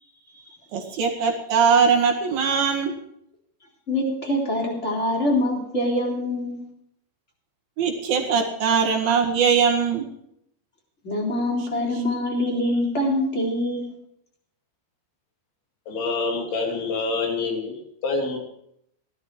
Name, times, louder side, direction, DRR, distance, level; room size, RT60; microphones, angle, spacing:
voice 1, 0.7-2.9 7.8-10.0, right 6 dB, 60° right, 0 dB, 3.2 m, -21 dB
voice 2, 3.9-6.6 11.0-13.9, left 1 dB, 15° left, -1 dB, 3.3 m, -24 dB
voice 3, 15.9-17.7 18.0-18.4, left 3 dB, 60° left, 1 dB, 4.7 m, -26 dB
17.0 x 12.0 x 4.8 m, 0.74 s
omnidirectional pair, 5.5 m